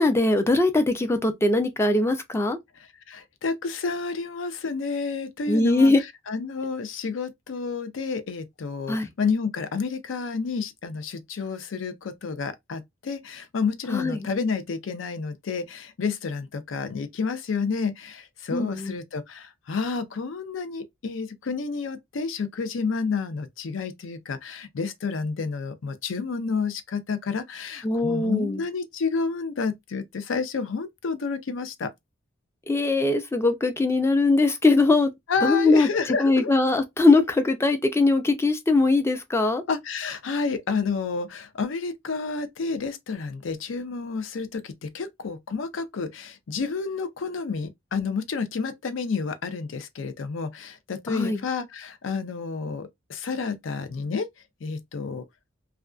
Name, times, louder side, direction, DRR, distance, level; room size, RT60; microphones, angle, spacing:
voice 1, 0.0-2.6 5.5-6.0 8.9-9.1 13.9-14.3 18.5-19.0 27.8-28.6 32.7-35.1 35.4-35.9 36.2-39.6 51.1-51.4, left 2 dB, 15° left, 0.4 m, -21 dB
voice 2, 3.1-5.9 6.3-31.9 35.3-36.5 39.7-54.3 54.6-55.2, left 4 dB, 80° left, 0.5 m, -30 dB
2.4 x 2.2 x 2.3 m
head